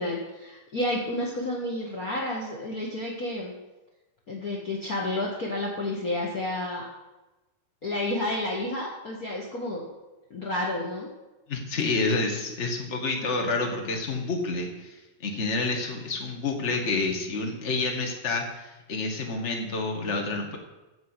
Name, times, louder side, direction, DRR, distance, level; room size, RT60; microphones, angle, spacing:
voice 1, 0.0-3.5 4.3-6.9 7.8-9.8 10.3-11.1, left 1 dB, 50° left, -2 dB, 1.0 m, -30 dB
voice 2, 11.5-20.6, left 3 dB, 35° left, 1 dB, 1.1 m, -29 dB
14.5 x 5.3 x 8.2 m, 1.0 s
omnidirectional pair, 4.3 m